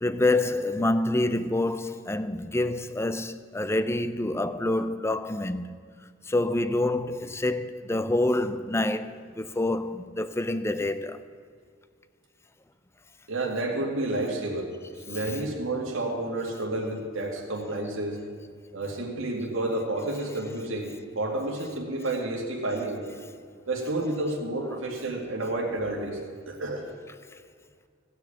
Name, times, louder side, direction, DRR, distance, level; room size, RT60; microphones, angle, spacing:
voice 1, 0.0-5.7 6.3-11.2, left 2 dB, 15° left, 0.5 m, -27 dB
voice 2, 13.3-14.7 15.1-18.2 18.7-23.0 23.7-26.2 26.5-26.9, right 2 dB, 90° right, 2.1 m, -30 dB
16.0 x 6.2 x 8.5 m
head